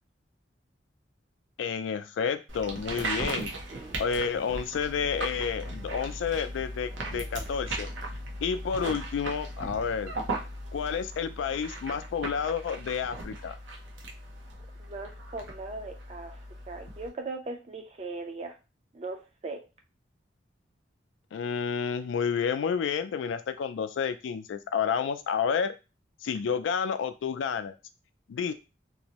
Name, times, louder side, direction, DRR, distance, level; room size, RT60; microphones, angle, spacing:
voice 1, 1.6-3.5 4.0-7.9 8.4-10.1 10.7-13.6 21.3-25.7 26.2-27.8 28.3-28.5, left 6 dB, 85° left, 10 dB, 0.3 m, -30 dB
sound 1, 2.5-17.1, right 1 dB, 85° right, 0.6 m, -38 dB
voice 2, 14.9-16.4 16.7-18.5 18.9-19.2 19.4-19.6, right 3 dB, 35° right, 4 dB, 0.4 m, -38 dB
2.6 x 2.0 x 2.8 m, 0.29 s
head